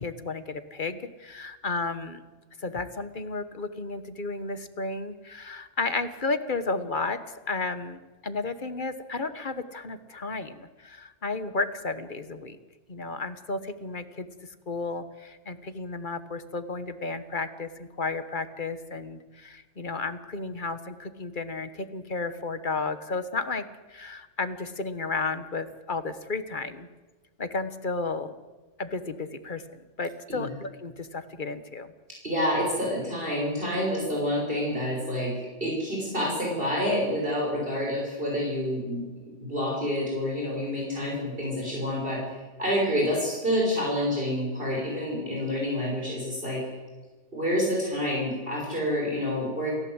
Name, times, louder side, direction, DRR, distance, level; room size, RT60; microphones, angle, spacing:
voice 1, 0.0-2.2 2.6-7.2 7.5-12.6 12.9-26.9 27.4-28.4 28.8-29.6 30.0-31.9, left 3 dB, 45° left, 10 dB, 1.4 m, -33 dB
voice 2, 32.2-46.6 47.3-49.7, equal, 50° right, -3 dB, 6.3 m, -28 dB
29.5 x 15.0 x 8.1 m, 1.3 s
omnidirectional pair, 1.2 m